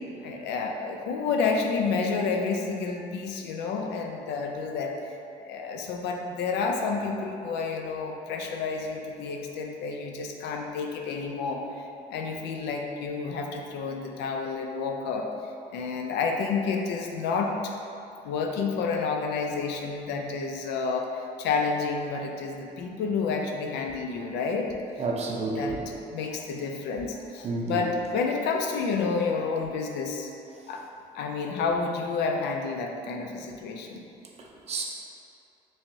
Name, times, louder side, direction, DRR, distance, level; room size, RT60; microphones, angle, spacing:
voice 1, 0.2-5.0 5.5-11.8 12.1-15.3 15.7-17.7 18.2-24.7 25.5-30.3 30.7-30.8 31.1-34.0, left 4 dB, 85° left, 3 dB, 0.4 m, -30 dB
voice 2, 25.0-25.9 27.4-27.9 34.7-34.8, right 3 dB, 40° right, -1 dB, 0.5 m, -30 dB
4.4 x 3.1 x 2.6 m, 2.7 s
cardioid pair, 110°, 17 cm